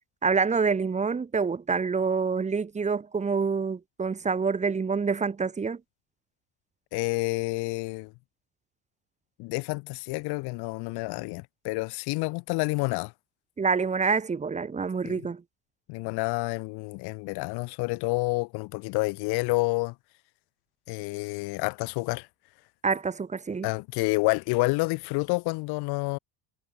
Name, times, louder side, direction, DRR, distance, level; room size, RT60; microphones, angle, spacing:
voice 1, 0.2-5.8 13.6-15.4 22.8-23.7, right 5 dB, 15° right, 4.3 m, -27 dB
voice 2, 6.9-8.1 9.4-13.1 15.0-15.2 15.9-19.9 20.9-22.3 23.6-26.2, left 25 dB, 60° left, 2.9 m, -29 dB
cardioid pair, 165°, 43 cm